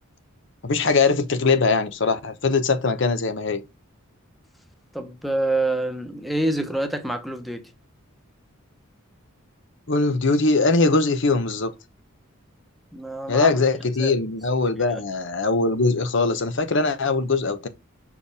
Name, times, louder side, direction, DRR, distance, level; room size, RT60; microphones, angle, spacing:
voice 1, 0.6-3.6 9.9-11.7 13.3-17.7, left 3 dB, 60° left, 0.8 m, -21 dB
voice 2, 4.9-7.7 12.9-13.5 14.0-14.2 14.9-15.0, right 2 dB, ahead, 1.0 m, -26 dB
6.5 x 4.9 x 3.4 m
head